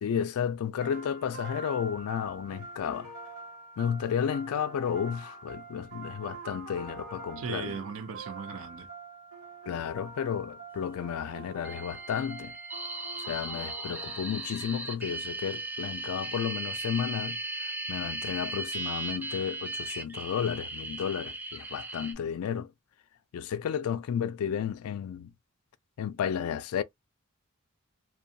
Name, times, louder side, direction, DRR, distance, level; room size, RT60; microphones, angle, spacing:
voice 1, 0.0-3.1 3.8-7.8 9.7-12.5 13.2-17.4 17.9-22.7 23.3-25.3 26.0-26.8, left 8 dB, 80° left, 0.3 m, -32 dB
sound 1, 0.8-14.7, right 3 dB, 85° right, 1.3 m, -45 dB
voice 2, 7.4-8.9, right 5 dB, 65° right, 0.5 m, -37 dB
sound 2, 11.6-22.1, right 2 dB, 10° right, 0.4 m, -37 dB
2.6 x 2.2 x 2.6 m
head